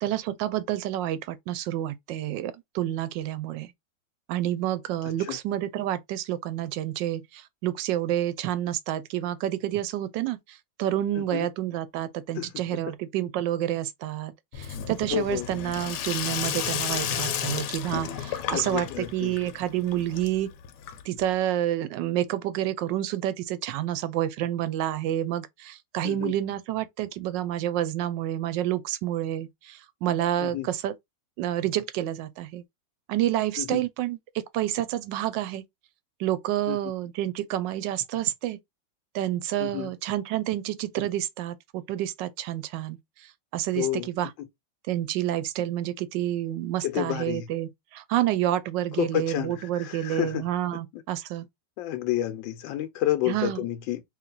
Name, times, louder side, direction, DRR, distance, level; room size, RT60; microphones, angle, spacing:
voice 1, 0.0-3.7 4.3-20.5 21.1-30.9 31.4-32.6 33.1-35.6 36.2-38.6 39.1-43.0 43.5-44.3 44.9-51.4 53.3-53.6, right 12 dB, 80° right, 1.2 m, -29 dB
voice 2, 11.2-11.5 12.3-12.6 15.1-15.5 18.5-19.4 26.0-26.4 30.4-30.7 33.6-33.8 36.7-36.8 39.6-39.9 43.8-44.5 46.8-47.5 48.9-51.0 51.8-54.0, left 13 dB, 90° left, 1.3 m, -30 dB
Sink (filling or washing), 14.5-21.3, left 9 dB, 70° left, 1.2 m, -32 dB
3.2 x 3.0 x 3.7 m
omnidirectional pair, 2.0 m